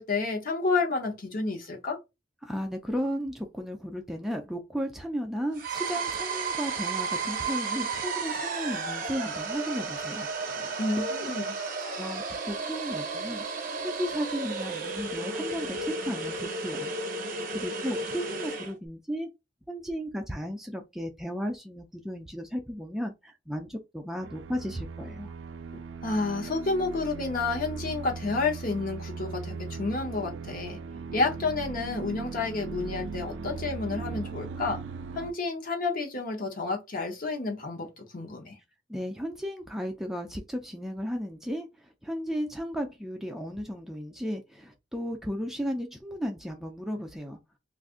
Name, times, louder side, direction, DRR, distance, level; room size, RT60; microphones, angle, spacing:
voice 1, 0.0-2.0 10.8-11.4 26.0-30.8 31.1-34.8 35.1-38.5, left 3 dB, 50° left, 0.9 m, -30 dB
voice 2, 2.4-11.3 12.0-13.4 13.8-16.9 17.5-19.3 19.7-25.3 38.9-47.4, equal, ahead, 0.4 m, -34 dB
sound 1, 5.5-18.7, right 4 dB, 50° right, 0.7 m, -33 dB
sound 2, 24.2-35.3, right 4 dB, 80° right, 0.3 m, -38 dB
2.5 x 2.5 x 3.6 m
head